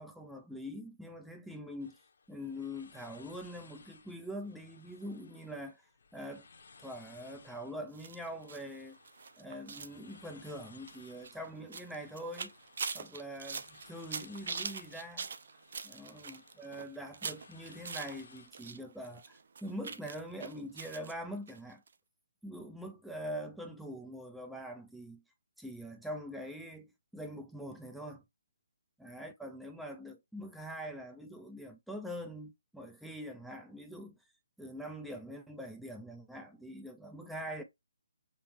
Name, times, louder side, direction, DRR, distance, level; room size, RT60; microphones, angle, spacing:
voice 1, 0.0-2.0 2.3-5.8 6.1-6.5 6.8-9.0 9.4-12.5 12.9-15.3 15.8-21.8 22.4-25.2 25.6-28.2 29.0-34.2 34.6-37.6, equal, ahead, 0.4 m, -44 dB
sound 1, 1.8-18.5, left 4 dB, 55° left, 0.8 m, -60 dB
sound 2, 7.9-18.8 19.0-21.1 21.5-21.6 21.9-22.0, right 5 dB, 50° right, 0.6 m, -43 dB
5.3 x 2.0 x 2.8 m
hypercardioid pair, 170°, 0 cm